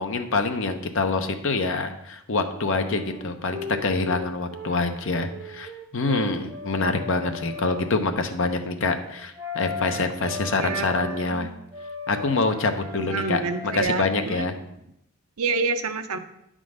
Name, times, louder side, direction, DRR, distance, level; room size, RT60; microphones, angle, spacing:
voice 1, 0.0-11.5 12.1-13.4 13.7-14.5, left 3 dB, 60° left, 7 dB, 0.8 m, -26 dB
sound 1, 2.8-4.8 5.0-7.9 9.3-11.3 11.7-13.8, left 2 dB, 10° right, 1.1 m, -36 dB
voice 2, 10.2-10.9 11.3-11.5 12.9-14.5 15.4-16.2, right 4 dB, 80° right, 8 dB, 0.7 m, -28 dB
9.6 x 3.8 x 6.3 m, 0.81 s
head